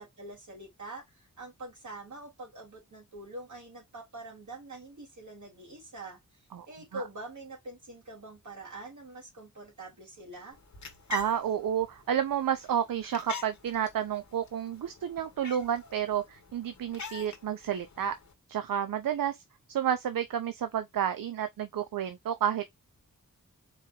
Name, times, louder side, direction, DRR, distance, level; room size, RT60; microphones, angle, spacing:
voice 1, 0.0-10.6, right 2 dB, 60° right, 3.1 m, -45 dB
sound 1, 10.5-18.3, left 3 dB, 55° left, 1.1 m, -45 dB
voice 2, 11.1-18.1 18.5-19.4 19.7-22.7, right 9 dB, 80° right, 0.6 m, -30 dB
4.5 x 2.8 x 3.6 m
wide cardioid pair, 125°, 33 cm